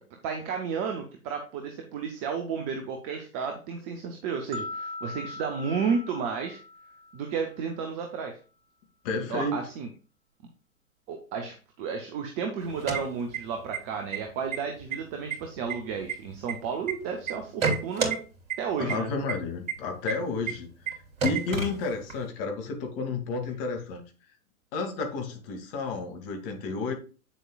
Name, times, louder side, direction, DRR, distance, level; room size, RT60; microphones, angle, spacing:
voice 1, 0.1-6.6 7.1-8.4 9.3-9.9 11.1-18.2 18.6-19.1, right 6 dB, 10° right, 4 dB, 0.3 m, -32 dB
sound 1, 4.5-7.6, left 2 dB, 50° right, 1.4 m, -40 dB
voice 2, 9.0-9.7 18.8-24.0 24.7-26.9, left 3 dB, 40° left, 4 dB, 2.3 m, -31 dB
sound 2, 12.6-13.8 14.1-14.2 14.5-15.0 15.3-16.9 17.3-18.2 18.5-18.6 18.9-19.0 19.3-19.4 19.7-19.8 20.1-20.2 20.5-20.6 20.9-21.0 21.2-22.2, right 5 dB, 65° right, 2.9 m, -29 dB
8.5 x 7.0 x 2.3 m, 0.36 s
figure-of-eight pair, 115°, 42 cm